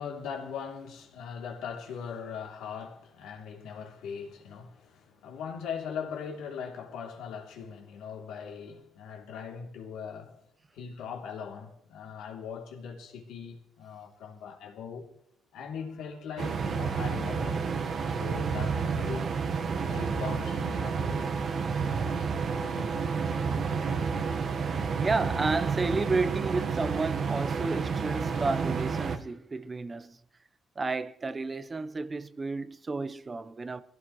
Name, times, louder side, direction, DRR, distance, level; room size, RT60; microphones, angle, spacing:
voice 1, 0.0-10.4 10.7-15.1 15.5-19.4 19.8-21.3 22.6-22.9, left 6 dB, 90° left, 3.0 m, -40 dB
sound 1, 16.4-29.2, right 5 dB, 55° right, 1.3 m, -30 dB
voice 2, 23.3-23.9 24.3-30.2 30.8-33.8, right 3 dB, 30° right, 0.8 m, -32 dB
23.5 x 16.0 x 3.1 m
cardioid pair, 90°, 0 cm